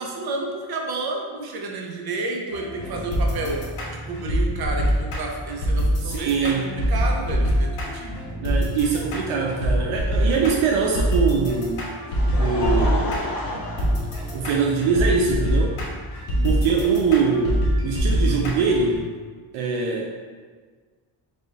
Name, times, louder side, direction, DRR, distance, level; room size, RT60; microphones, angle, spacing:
voice 1, 0.0-3.7 4.1-8.2 13.8-13.9 16.3-16.5, right 2 dB, 45° right, 1 dB, 0.8 m, -31 dB
sound 1, 2.5-19.0, equal, 90° left, 1.2 m, -25 dB
voice 2, 6.0-6.7 8.4-11.9 12.4-13.2 14.3-15.8 16.4-19.0 19.5-20.2, right 5 dB, 75° right, 0 dB, 0.6 m, -23 dB
Laughter, 11.6-14.9 15.7-15.8 17.3-17.4, left 1 dB, 45° left, 1.1 m, -31 dB
4.2 x 2.5 x 3.8 m, 1.6 s
cardioid pair, 75°, 49 cm